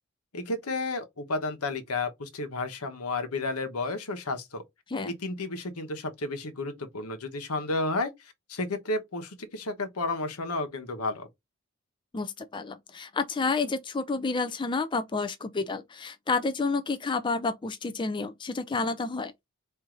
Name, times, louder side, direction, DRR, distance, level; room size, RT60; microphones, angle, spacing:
voice 1, 0.3-4.6 5.0-11.3, left 2 dB, 85° left, 1.1 m, -32 dB
voice 2, 12.1-19.3, left 4 dB, 20° left, 0.4 m, -30 dB
4.5 x 2.7 x 3.8 m
head